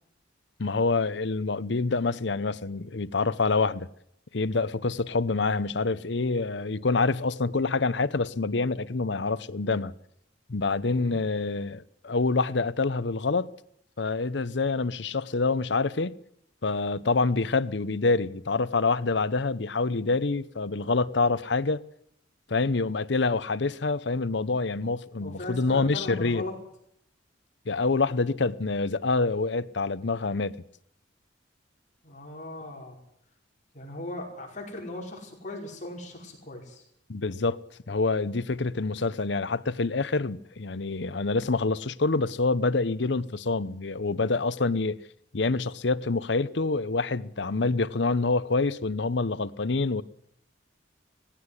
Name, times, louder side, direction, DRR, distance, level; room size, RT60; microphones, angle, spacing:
voice 1, 0.6-3.9 4.3-9.9 10.5-13.5 14.0-16.2 16.6-21.8 22.5-26.4 27.7-30.6 37.1-37.6 37.9-45.0 45.3-50.0, left 3 dB, 65° left, 0.8 m, -26 dB
voice 2, 25.2-26.5 32.0-33.0 33.7-36.8, left 2 dB, 40° left, 5.5 m, -38 dB
18.5 x 16.0 x 9.9 m
head